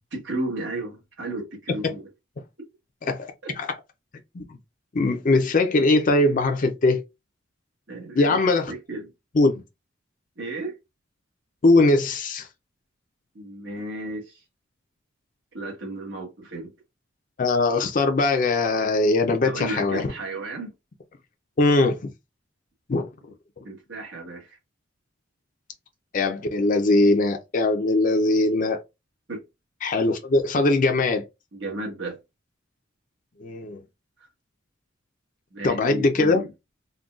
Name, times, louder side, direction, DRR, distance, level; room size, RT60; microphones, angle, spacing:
voice 1, 0.1-2.0 3.4-3.5 7.9-8.4 8.7-9.1 10.4-10.7 13.3-14.4 15.5-16.7 19.4-20.7 23.6-24.6 29.3-29.4 31.5-32.2 35.5-36.5, right 2 dB, 70° right, 1.2 m, -33 dB
voice 2, 4.9-7.0 8.2-8.7 9.4-9.6 11.6-12.5 17.4-20.1 21.6-22.1 22.9-23.1 26.1-28.8 29.8-31.2 33.4-33.8 35.6-36.4, left 2 dB, 40° left, 0.4 m, -21 dB
3.7 x 2.2 x 2.4 m
head